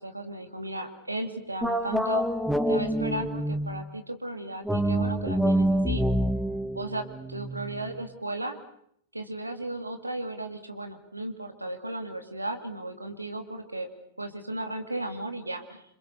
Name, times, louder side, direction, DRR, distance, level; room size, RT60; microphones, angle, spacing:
voice 1, 0.0-2.2 2.7-6.0 6.7-8.6 9.1-13.9 14.2-15.8, right 1 dB, 90° right, 6 dB, 2.7 m, -35 dB
sound 1, 1.6-3.9 4.6-8.0, right 1 dB, ahead, 1.4 m, -27 dB
28.0 x 27.0 x 6.8 m, 0.70 s
figure-of-eight pair, 95°, 0 cm